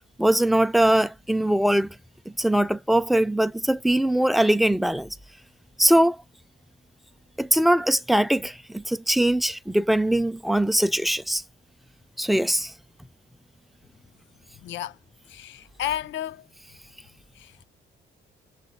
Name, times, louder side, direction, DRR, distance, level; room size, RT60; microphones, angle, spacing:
voice 1, 0.2-2.0 2.4-5.2 5.8-6.2 7.4-11.4 12.2-12.7, right 1 dB, ahead, 0.4 m, -21 dB
voice 2, 14.6-15.0 15.3-16.5 17.3-17.7, left 11 dB, 70° left, 0.5 m, -33 dB
7.0 x 4.0 x 4.1 m
cardioid pair, 90°, 20 cm